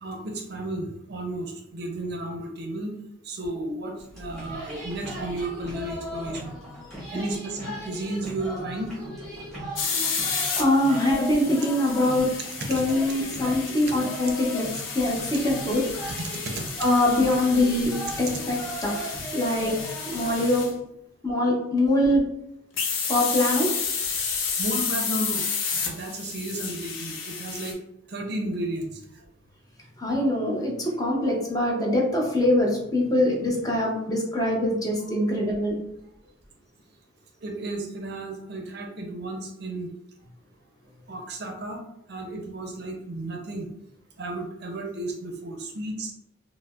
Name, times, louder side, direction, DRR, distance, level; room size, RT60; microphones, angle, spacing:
voice 1, 0.0-3.0 3.2-6.5 7.1-8.9 12.6-12.9 13.5-13.6 16.2-16.6 24.6-25.4 25.8-27.8 28.1-29.0 37.4-39.9 41.1-41.8 42.1-43.7 44.2-46.1, right 1 dB, 50° right, 2 dB, 0.5 m, -33 dB
sound 1, 4.0-20.6, right 1 dB, ahead, 1.0 m, -38 dB
sound 2, 9.8-20.7 22.7-27.7, left 5 dB, 75° left, 0.6 m, -31 dB
voice 2, 10.5-12.3 12.7-15.8 16.8-19.8 20.0-20.7 21.2-22.2 23.1-23.7 24.2-24.5 30.0-35.8, left 1 dB, 20° left, -2 dB, 0.6 m, -23 dB
4.6 x 2.0 x 2.3 m, 0.80 s
head